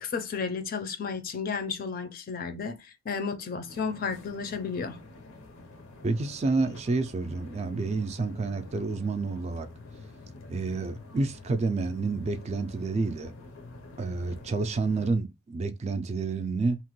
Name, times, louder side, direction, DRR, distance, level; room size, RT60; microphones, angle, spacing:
voice 1, 0.0-5.0, left 5 dB, 45° left, 0.4 m, -33 dB
sound 1, 3.7-15.1, left 2 dB, 90° left, 0.7 m, -47 dB
voice 2, 6.0-9.7 10.5-13.3 14.0-16.8, right 3 dB, 35° right, 0.3 m, -29 dB
2.9 x 2.1 x 2.9 m
head